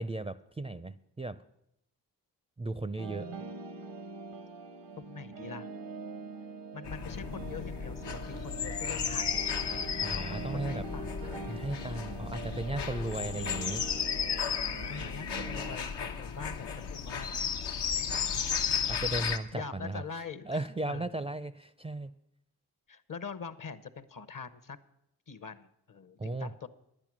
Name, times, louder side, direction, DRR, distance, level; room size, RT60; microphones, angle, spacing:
voice 1, 0.0-1.4 2.6-3.3 10.0-10.8 11.5-13.8 18.9-20.0 20.4-22.1 26.2-26.5, right 2 dB, 15° right, 14 dB, 0.4 m, -36 dB
sound 1, 3.0-15.8, right 2 dB, 90° right, 0.9 m, -43 dB
voice 2, 5.0-5.7 6.7-11.3 12.4-13.0 14.9-17.3 17.9-18.1 19.5-21.2 22.9-24.8 25.3-26.7, left 5 dB, 50° left, 15 dB, 0.8 m, -44 dB
sound 2, 6.9-19.4, left 7 dB, 80° left, 0.9 m, -34 dB
10.5 x 8.9 x 6.1 m, 0.81 s
supercardioid pair, 40°, 41 cm